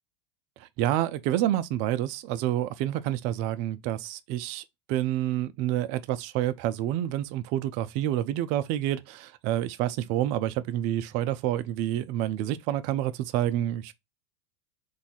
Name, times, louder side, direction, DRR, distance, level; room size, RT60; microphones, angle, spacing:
voice 1, 0.6-13.9, right 12 dB, 55° right, 0.4 m, -28 dB
2.6 x 2.3 x 4.1 m
hypercardioid pair, 100°, 15 cm